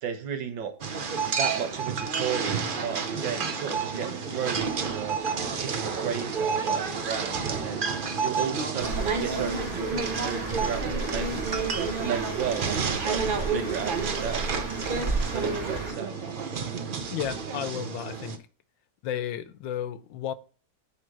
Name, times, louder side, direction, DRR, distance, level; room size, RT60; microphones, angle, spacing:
voice 1, 0.0-0.7 1.3-5.2 5.6-7.9 8.2-11.4 12.0-14.4 15.3-16.2, right 8 dB, 85° right, 1.9 m, -34 dB
sound 1, 0.8-18.4, right 5 dB, 60° right, 0.5 m, -30 dB
sound 2, 2.3-16.7, equal, 5° right, 0.8 m, -46 dB
Bird, 8.8-15.9, right 2 dB, 40° right, 3.1 m, -34 dB
voice 2, 17.1-18.4 19.0-20.3, left 10 dB, 85° left, 1.4 m, -33 dB
9.9 x 3.7 x 4.7 m
omnidirectional pair, 2.0 m